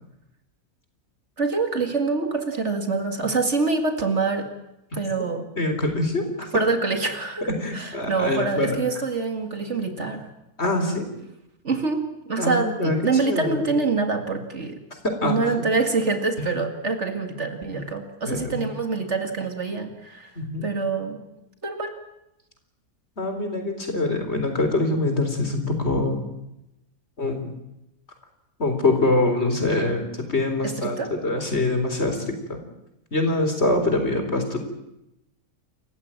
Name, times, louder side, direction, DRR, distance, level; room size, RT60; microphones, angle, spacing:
voice 1, 1.4-4.5 4.9-5.4 6.5-10.3 11.6-14.8 15.2-20.3 20.6-21.2 21.6-21.9 30.6-31.1, right 4 dB, 50° right, 6 dB, 2.4 m, -25 dB
voice 2, 5.6-6.5 7.6-8.8 10.6-11.1 12.4-13.0 13.2-13.7 15.2-15.4 16.4-16.5 18.2-18.7 20.4-20.7 23.2-26.2 27.2-27.5 28.6-30.0 30.3-32.2 32.5-32.6 33.1-34.6, left 2 dB, 45° left, 6 dB, 4.2 m, -24 dB
28.5 x 15.0 x 9.0 m, 0.87 s
omnidirectional pair, 1.6 m